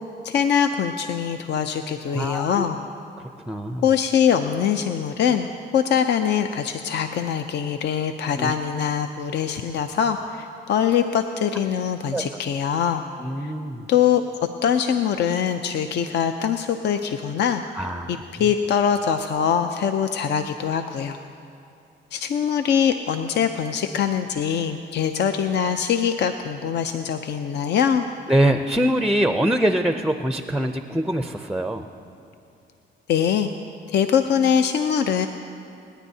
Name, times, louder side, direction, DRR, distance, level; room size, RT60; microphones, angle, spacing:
voice 1, 0.2-2.8 3.8-13.0 13.4-13.5 13.9-14.2 14.6-21.2 22.1-28.1 33.1-33.5 33.9-35.3, left 8 dB, 60° left, 7 dB, 0.5 m, -23 dB
voice 2, 2.1-2.6 3.5-3.9 8.4-8.5 12.1-12.2 13.2-13.9 17.8-18.2 28.3-31.8, right 1 dB, 5° right, 6 dB, 0.5 m, -23 dB
27.0 x 10.0 x 2.8 m, 2.6 s
cardioid pair, 90°, 20 cm